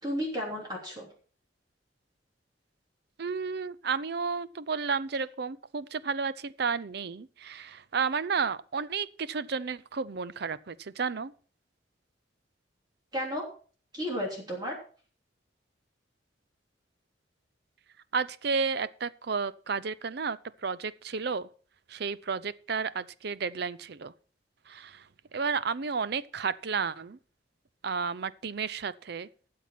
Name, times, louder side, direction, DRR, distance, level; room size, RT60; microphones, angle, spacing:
voice 1, 0.0-1.1 13.1-13.4 13.9-14.8, equal, 20° right, 3.3 m, -33 dB
voice 2, 3.2-11.3 18.1-21.5 21.9-24.1 24.7-25.1 25.3-27.2 27.8-29.3, right 5 dB, 60° right, 0.6 m, -32 dB
13.0 x 7.7 x 5.8 m
head